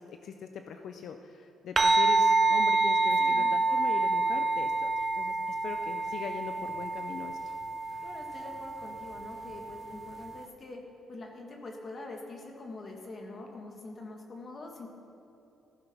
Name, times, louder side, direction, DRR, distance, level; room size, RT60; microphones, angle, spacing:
voice 1, 0.0-7.5, left 6 dB, 65° left, 6 dB, 0.6 m, -41 dB
sound 1, 1.8-10.5, right 3 dB, 30° right, 0.6 m, -28 dB
voice 2, 3.2-3.5 8.0-10.8 11.1-14.9, left 2 dB, 45° left, 1 dB, 1.5 m, -44 dB
15.0 x 7.0 x 5.8 m, 2.9 s
cardioid pair, 90°, 0 cm